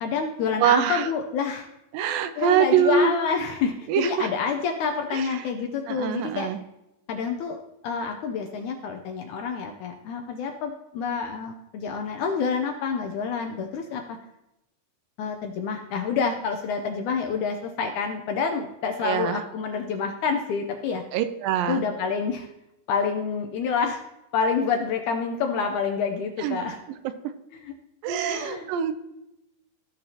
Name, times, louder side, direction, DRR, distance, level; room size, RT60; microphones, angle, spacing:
voice 1, 0.0-1.7 2.4-6.5 7.1-7.6 7.8-14.2 15.2-21.0 21.7-22.5 22.9-24.0 24.3-26.8 27.6-27.7 28.3-28.7, left 5 dB, 80° left, 4 dB, 1.8 m, -28 dB
voice 2, 0.6-1.1 1.9-3.1 3.9-4.3 5.1-5.4 5.9-6.6 19.0-19.4 21.1-21.8 26.4-26.7 28.0-28.9, right 8 dB, 80° right, 11 dB, 2.3 m, -24 dB
15.0 x 6.6 x 2.8 m, 0.90 s
omnidirectional pair, 4.1 m